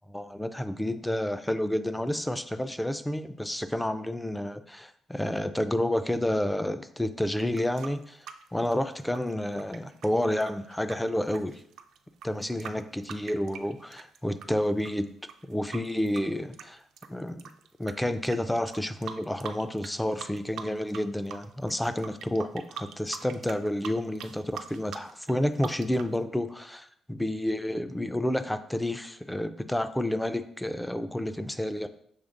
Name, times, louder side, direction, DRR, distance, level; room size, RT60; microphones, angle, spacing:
voice 1, 0.1-8.3 8.5-11.6 12.2-15.1 15.4-16.8 17.1-17.4 17.8-31.9, left 1 dB, 5° left, 11 dB, 0.3 m, -30 dB
sound 1, 7.3-14.5 14.8-17.9 18.2-18.4 18.7-19.9 20.2-21.0 21.3-26.1, right 8 dB, 80° right, 0.4 m, -43 dB
6.4 x 3.2 x 2.5 m, 0.67 s
cardioid pair, 90°, 0 cm